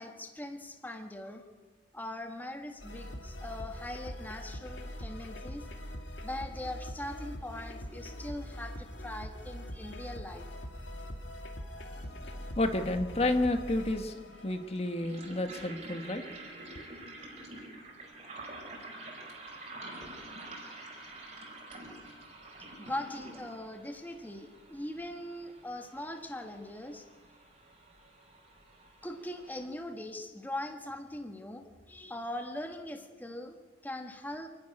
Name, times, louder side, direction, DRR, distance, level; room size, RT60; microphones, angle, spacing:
voice 1, 0.0-1.4 1.9-5.6 6.2-10.5 22.8-27.0 29.0-34.5, left 1 dB, 10° left, 5 dB, 1.3 m, -41 dB
sound 1, 2.8-15.9, equal, 90° left, 2.6 m, -43 dB
voice 2, 12.0-14.2 14.4-16.2 16.7-16.9, left 1 dB, 35° left, 7 dB, 1.3 m, -31 dB
sound 2, 14.3-29.7, right 2 dB, 40° right, 4.6 m, -48 dB
27.0 x 12.0 x 9.8 m, 1.4 s
head